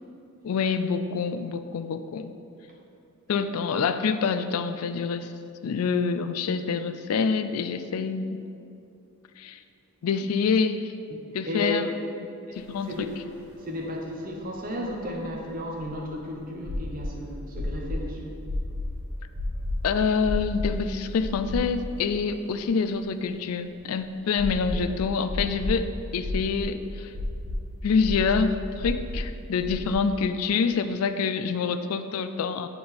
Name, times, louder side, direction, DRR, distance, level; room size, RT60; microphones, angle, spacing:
voice 1, 0.4-2.3 3.3-5.3 5.6-8.4 9.4-9.6 10.0-10.9 11.3-11.9 12.6-13.1 19.8-27.1 27.8-32.7, left 5 dB, 80° left, 10 dB, 0.4 m, -26 dB
voice 2, 11.1-11.8 12.5-12.6 12.9-13.1 13.6-18.4, left 1 dB, 40° right, 0 dB, 0.9 m, -34 dB
sound 1, 12.9-13.0 13.2-13.3 14.8-16.1 16.7-17.1 17.5-18.0 18.5-18.9 19.4-19.8 20.2-20.7 21.2-22.0 22.3-22.4 24.4-24.9 25.3-25.8 26.2-26.7 27.1-27.6 28.0-28.4 28.8-29.2 29.6-29.9, left 1 dB, 75° right, 1.6 m, -30 dB
8.3 x 4.1 x 4.3 m, 2.6 s
head